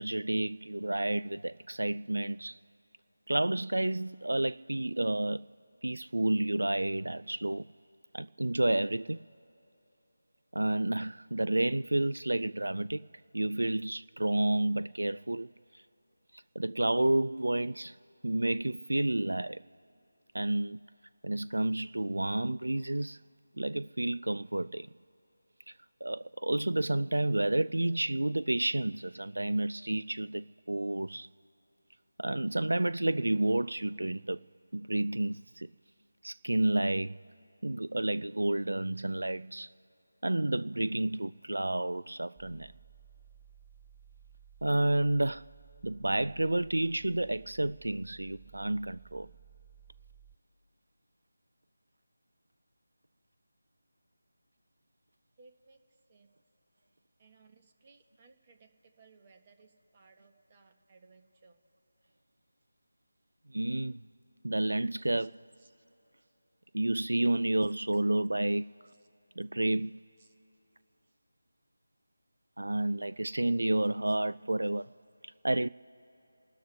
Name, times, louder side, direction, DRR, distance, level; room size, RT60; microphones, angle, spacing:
voice 1, 0.0-2.6 3.3-5.6 5.8-7.7 8.1-9.2 10.5-13.1 13.3-15.8 16.3-18.0 18.2-19.6 20.3-20.9 21.2-23.2 23.6-24.9 25.7-25.8 26.0-31.3 32.2-34.5 34.7-35.7 36.2-37.2 37.6-39.7 40.2-42.7 44.6-45.5 45.8-49.3 63.5-64.0 64.4-65.4 66.7-68.8 69.4-70.0 72.6-74.9 75.2-75.7, right 1 dB, 80° right, 0.3 m, -30 dB
sound 1, 42.4-50.4, right 9 dB, ahead, 0.4 m, -57 dB
voice 2, 55.4-56.3 57.2-61.6 65.2-65.3 65.6-65.7 67.9-68.0 69.0-69.1 70.2-70.3 74.1-74.2, right 4 dB, 25° right, 1.4 m, -62 dB
29.0 x 13.0 x 3.4 m
figure-of-eight pair, 165°, 0 cm